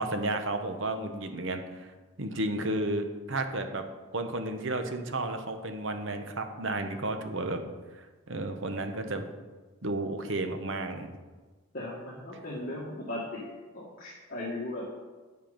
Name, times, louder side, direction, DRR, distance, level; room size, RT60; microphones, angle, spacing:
voice 1, 0.0-1.9 2.2-3.9 4.1-7.6 7.9-9.3 9.8-11.1, right 2 dB, 60° right, 6 dB, 1.0 m, -32 dB
voice 2, 11.7-13.5 13.7-14.9, left 1 dB, 40° left, -6 dB, 1.8 m, -37 dB
8.9 x 7.8 x 5.2 m, 1.3 s
head